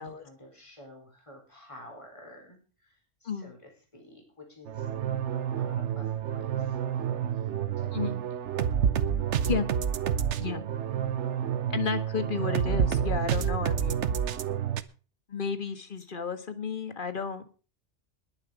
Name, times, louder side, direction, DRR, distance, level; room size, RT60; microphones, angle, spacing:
voice 1, 0.0-4.9 5.4-6.8 7.1-8.1 8.8-8.9, left 1 dB, 25° left, 1 dB, 4.6 m, -51 dB
sound 1, 4.7-14.8, right 8 dB, 70° right, 1.1 m, -29 dB
voice 2, 11.7-14.1 15.3-17.4, left 6 dB, 45° left, 10 dB, 1.6 m, -32 dB
20.5 x 7.4 x 5.0 m, 0.37 s
omnidirectional pair, 1.2 m